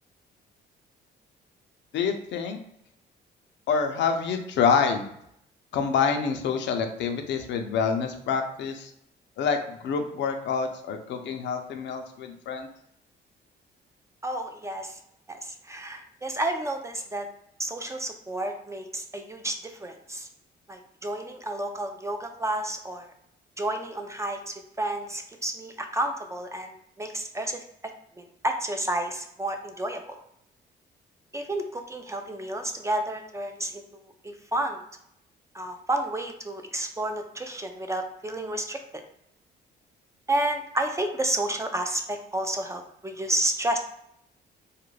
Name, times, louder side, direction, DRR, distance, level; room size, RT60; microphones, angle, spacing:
voice 1, 1.9-2.6 3.7-5.1 5.7-8.9 9.4-12.7, left 6 dB, 70° left, 5 dB, 0.5 m, -27 dB
voice 2, 14.2-15.0 15.3-17.3 17.6-20.3 20.7-23.1 23.6-27.6 28.2-30.2 31.3-33.8 34.2-34.8 35.5-38.8 40.3-43.8, right 1 dB, 15° right, 4 dB, 0.3 m, -31 dB
2.3 x 2.1 x 3.1 m, 0.73 s
cardioid pair, 90°, 19 cm